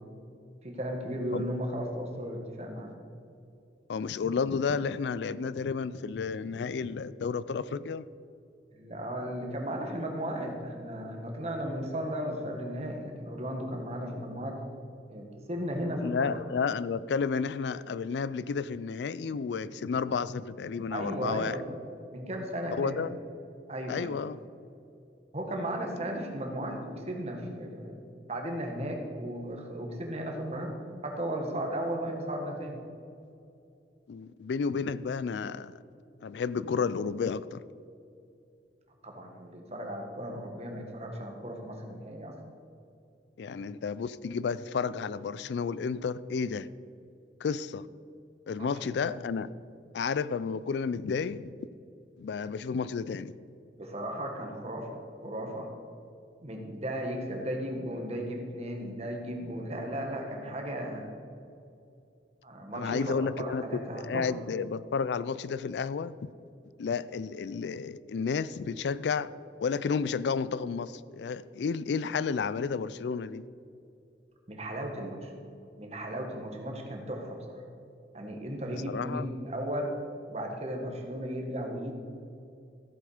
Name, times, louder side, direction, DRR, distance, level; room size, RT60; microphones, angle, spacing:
voice 1, 0.6-2.9 8.7-14.6 15.1-16.4 20.9-21.7 22.1-23.0 23.7-24.1 25.3-28.0 28.3-30.7 31.0-32.8 39.0-42.3 43.4-43.5 48.6-48.7 49.0-49.2 53.7-55.7 56.4-61.1 62.4-64.3 74.5-75.3 75.8-77.6 78.1-79.9 80.3-82.0, equal, 35° right, 1.7 m, -35 dB
voice 2, 3.9-8.1 16.0-21.6 22.8-23.2 23.9-24.4 34.1-35.7 36.2-37.6 43.4-46.7 47.4-47.9 48.5-49.5 49.9-51.5 52.2-53.3 62.7-66.3 66.8-69.3 69.6-73.4 78.7-79.3, left 5 dB, 75° left, 0.4 m, -31 dB
14.5 x 7.9 x 5.0 m
head